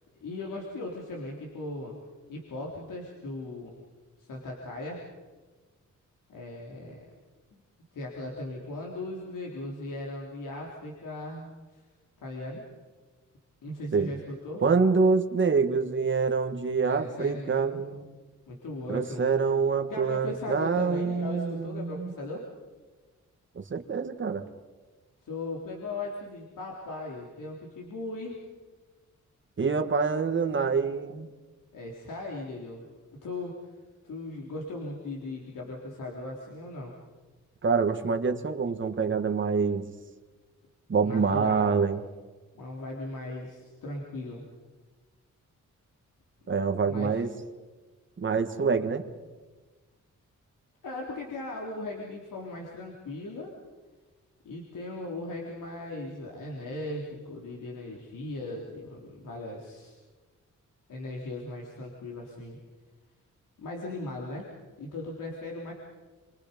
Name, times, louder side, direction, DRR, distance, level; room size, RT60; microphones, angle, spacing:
voice 1, 0.2-2.0 2.3-3.7 4.2-5.0 6.3-7.1 7.9-11.8 12.2-12.6 13.6-14.6 16.8-17.8 18.5-19.3 19.8-22.4 25.2-28.4 31.7-32.8 33.2-33.6 34.0-36.9 41.0-41.9 42.5-44.4 46.6-47.1 48.6-48.7 50.8-53.5 54.4-59.9 60.9-62.6 63.6-64.5 64.8-65.7, left 2 dB, 90° left, -2 dB, 3.6 m, -38 dB
voice 2, 14.6-18.2 18.9-22.1 23.5-24.4 29.6-31.3 37.6-39.9 40.9-42.0 46.5-47.3 48.2-49.0, right 5 dB, 40° right, 6 dB, 1.6 m, -26 dB
29.5 x 24.0 x 5.3 m, 1.3 s
wide cardioid pair, 140°, 31 cm